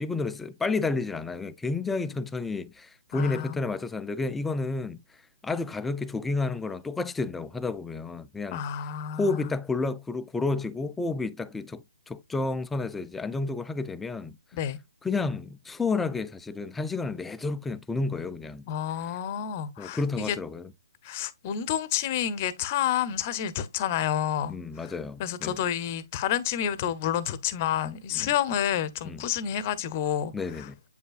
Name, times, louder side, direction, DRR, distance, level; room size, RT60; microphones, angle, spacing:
voice 1, 0.0-5.0 5.4-8.6 9.2-14.3 15.0-18.6 19.8-20.7 24.5-25.6 28.1-28.3 29.0-29.2 30.3-30.8, left 3 dB, 5° left, 0.3 m, -31 dB
voice 2, 3.1-3.6 8.5-9.5 14.5-14.8 18.7-20.4 21.0-24.5 24.8-24.9 25.2-30.7, left 10 dB, 30° left, 0.8 m, -29 dB
8.3 x 5.4 x 2.4 m
hypercardioid pair, 150°, 2 cm